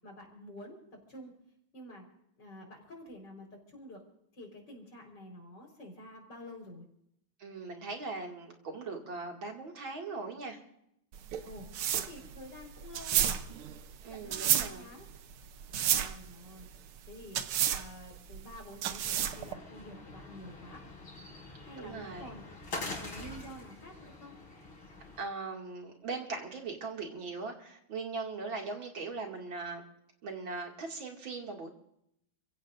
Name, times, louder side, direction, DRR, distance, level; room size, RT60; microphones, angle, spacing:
voice 1, 0.0-1.3 1.7-2.1 2.4-4.0 4.3-6.9 11.4-13.4 14.1-15.1 15.8-16.7 17.1-20.8 21.6-22.5 22.7-24.4, left 1 dB, 55° left, 2 dB, 5.3 m, -49 dB
voice 2, 7.4-10.6 14.0-14.9 21.8-22.3 25.2-29.8 30.2-31.7, right 4 dB, 70° right, 1 dB, 3.1 m, -40 dB
sound 1, 11.1-19.5, right 10 dB, 85° right, 1.8 m, -32 dB
sound 2, 19.0-25.2, left 2 dB, 75° left, 4.8 m, -45 dB
29.5 x 16.5 x 2.6 m, 0.76 s
omnidirectional pair, 2.3 m